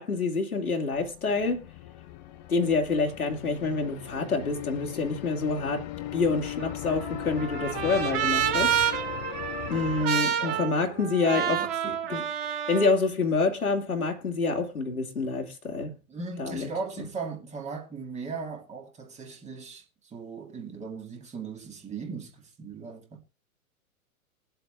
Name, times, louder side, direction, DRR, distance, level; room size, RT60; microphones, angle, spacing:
voice 1, 0.0-1.7 2.5-5.9 6.1-8.7 9.7-12.2 12.7-15.9 16.4-16.7, left 4 dB, 80° left, 2.3 m, -27 dB
sound 1, 0.9-10.1, left 14 dB, 30° left, 0.8 m, -38 dB
Trumpet, 6.6-12.9, right 9 dB, 40° right, 2.8 m, -29 dB
voice 2, 9.9-10.7 11.0-12.0 16.1-23.2, right 4 dB, 15° right, 2.0 m, -39 dB
22.0 x 7.8 x 2.3 m
figure-of-eight pair, 105°, 43 cm